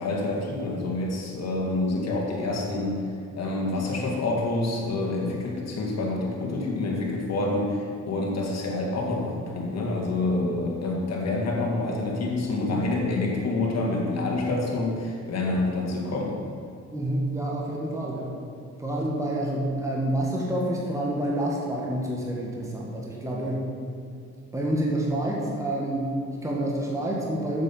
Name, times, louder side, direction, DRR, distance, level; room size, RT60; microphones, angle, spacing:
voice 1, 0.0-3.0 3.3-16.4, left 2 dB, 60° left, -1 dB, 2.2 m, -27 dB
voice 2, 16.9-18.4 18.8-23.7 24.5-27.6, right 1 dB, 10° right, -3 dB, 1.9 m, -28 dB
7.6 x 6.4 x 7.4 m, 2.5 s
cardioid pair, 90°, 30 cm